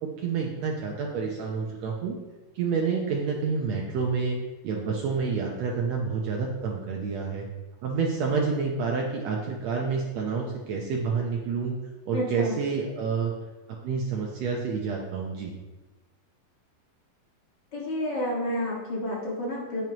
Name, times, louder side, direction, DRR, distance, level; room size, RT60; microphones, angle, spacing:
voice 1, 0.0-2.1 2.5-4.4 4.6-7.4 7.8-11.7 12.1-13.3 13.8-15.5, right 5 dB, 85° right, -1 dB, 1.5 m, -28 dB
voice 2, 12.1-12.5 17.7-19.8, left 1 dB, 40° left, -4 dB, 1.6 m, -30 dB
9.1 x 8.5 x 2.9 m, 1.2 s
omnidirectional pair, 4.2 m